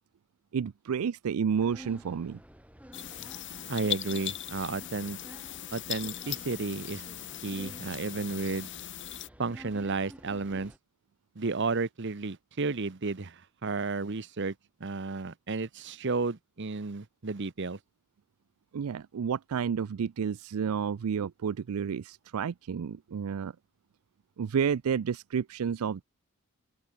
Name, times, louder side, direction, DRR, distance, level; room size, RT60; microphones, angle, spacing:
voice 1, 0.5-2.4 18.7-23.5 24.4-26.0, right 7 dB, 75° right, 0.4 m, -30 dB
sound 1, 1.5-10.8, equal, 5° right, 5.1 m, -51 dB
sound 2, 2.9-9.3, left 11 dB, 55° left, 2.4 m, -39 dB
voice 2, 3.7-5.2 5.7-7.0 7.4-8.7 9.4-10.7 11.4-14.5 14.8-17.8, right 3 dB, 55° right, 0.9 m, -32 dB
open air
head